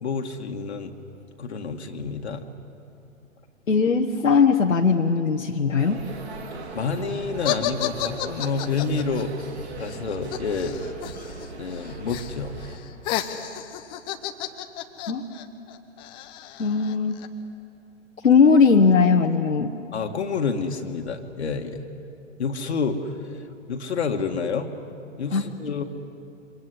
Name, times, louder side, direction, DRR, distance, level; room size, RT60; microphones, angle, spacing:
voice 1, 0.0-0.9 1.4-2.5 6.8-9.3 9.8-10.8 11.6-12.6 19.9-21.9 22.4-23.1 23.7-24.7 25.2-25.8, left 5 dB, 55° left, 4 dB, 1.9 m, -28 dB
voice 2, 3.7-6.0 15.1-15.2 16.6-17.2 18.2-19.7 25.3-25.4, left 5 dB, 75° left, 1 dB, 1.4 m, -19 dB
sound 1, 5.8-12.8, right 3 dB, 55° right, 3.7 m, -39 dB
sound 2, 7.4-11.5 11.7-12.3 12.6-17.3, left 12 dB, 15° left, 0.7 m, -32 dB
28.0 x 25.0 x 8.0 m, 2.7 s
figure-of-eight pair, 125°, 39 cm